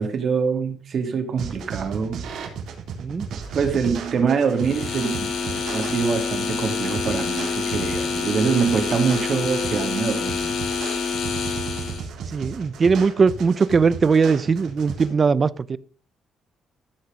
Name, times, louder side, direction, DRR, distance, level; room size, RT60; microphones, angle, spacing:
voice 1, 0.0-2.2 3.5-10.5, right 6 dB, 55° right, 2.7 m, -24 dB
sound 1, 1.4-15.1, right 6 dB, 80° right, 3.4 m, -35 dB
sound 2, 4.6-12.1, left 5 dB, 75° left, 5.1 m, -27 dB
voice 2, 12.3-15.8, right 5 dB, 40° right, 0.7 m, -20 dB
14.5 x 6.6 x 5.2 m
cardioid pair, 90°, 0 cm